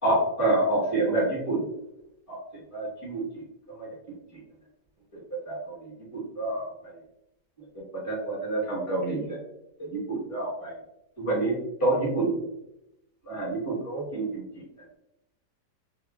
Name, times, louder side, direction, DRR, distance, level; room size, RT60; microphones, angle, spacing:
voice 1, 0.0-1.6 2.3-2.4 2.7-3.4 3.8-3.9 4.3-4.4 5.5-6.9 7.9-9.4 9.8-10.7 11.2-11.5 11.8-12.4 13.2-14.6, right 2 dB, 10° left, -6 dB, 1.2 m, -28 dB
2.9 x 2.5 x 2.3 m, 0.86 s
omnidirectional pair, 1.8 m